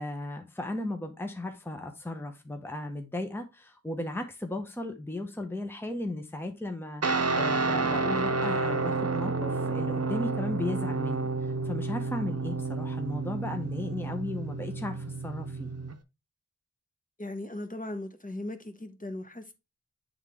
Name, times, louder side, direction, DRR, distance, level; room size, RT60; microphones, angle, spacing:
voice 1, 0.0-11.3 11.6-15.7, left 1 dB, 5° left, 0.9 m, -35 dB
Guitar, 7.0-15.9, right 3 dB, 50° right, 0.8 m, -30 dB
voice 2, 17.2-19.5, left 1 dB, 25° left, 1.1 m, -38 dB
9.3 x 3.7 x 3.5 m
wide cardioid pair, 65°, 32 cm